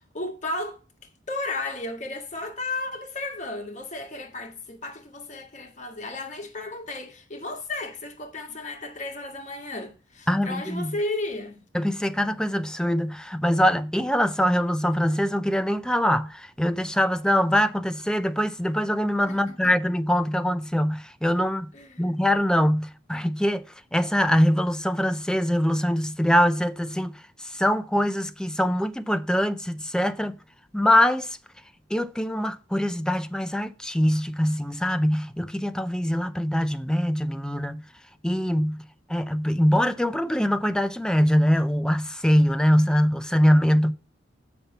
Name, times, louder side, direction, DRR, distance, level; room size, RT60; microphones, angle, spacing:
voice 1, 0.2-0.8 1.3-11.6 19.3-19.7 21.7-22.2, left 2 dB, 40° left, 1.9 m, -34 dB
voice 2, 10.3-10.9 11.7-21.7 22.0-23.6 23.9-27.1 27.4-30.3 30.7-31.4 31.9-37.8 38.2-38.8 39.1-43.9, equal, 5° left, 0.5 m, -23 dB
7.0 x 5.7 x 6.8 m
head